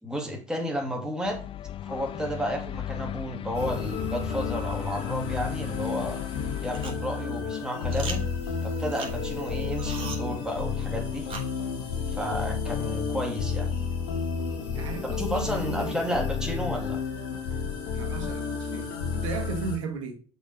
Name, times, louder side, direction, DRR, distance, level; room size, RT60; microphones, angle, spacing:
voice 1, 0.0-1.4 1.8-6.2 6.6-8.2 8.6-11.3 12.1-13.7 15.0-17.0, equal, 5° right, 2.9 m, -32 dB
sound 1, 1.2-6.9, left 11 dB, 35° left, 0.4 m, -36 dB
sound 2, 3.5-19.8, left 5 dB, 70° left, 1.9 m, -31 dB
sound 3, 5.8-12.2, right 4 dB, 35° right, 3.5 m, -43 dB
voice 2, 14.7-16.0 17.9-20.2, right 5 dB, 80° right, 1.4 m, -36 dB
6.5 x 5.4 x 5.0 m
hypercardioid pair, 65°, 16 cm